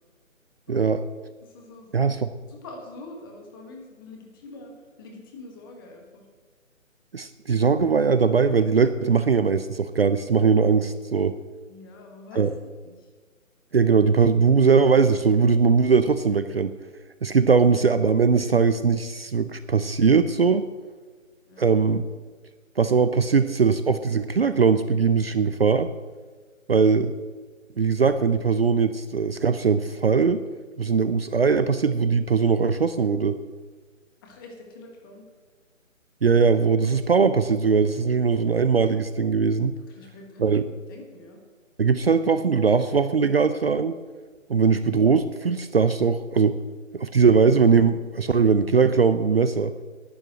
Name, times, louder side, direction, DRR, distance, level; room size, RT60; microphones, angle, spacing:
voice 1, 0.7-1.0 1.9-2.3 7.1-11.4 12.4-12.5 13.7-16.7 17.2-20.7 21.6-22.0 22.8-25.9 26.7-27.1 27.8-30.4 30.8-33.4 36.2-39.7 40.4-40.6 41.8-44.0 44.5-46.6 46.9-49.7, right 5 dB, 50° right, 11 dB, 0.6 m, -20 dB
voice 2, 1.4-2.2 2.5-4.7 5.0-6.3 11.7-12.5 12.8-13.1 21.5-21.7 34.2-35.2 39.9-41.4, left 2 dB, 15° left, 2 dB, 1.6 m, -45 dB
11.5 x 9.0 x 7.9 m, 1.4 s
figure-of-eight pair, 150°, 40 cm